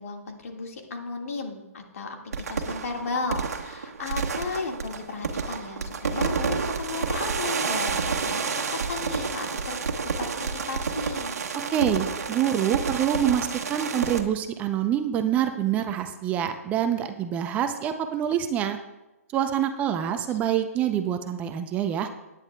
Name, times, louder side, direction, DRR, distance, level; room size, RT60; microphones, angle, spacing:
voice 1, 0.0-9.8 10.2-11.4 20.1-20.4, left 4 dB, 70° left, 2 dB, 1.9 m, -35 dB
sound 1, 2.3-14.2, right 5 dB, 80° right, 1.2 m, -29 dB
voice 2, 11.7-18.8 19.3-22.1, right 10 dB, 15° right, 8 dB, 0.5 m, -26 dB
17.0 x 10.0 x 2.3 m, 1.0 s
hypercardioid pair, 150°, 8 cm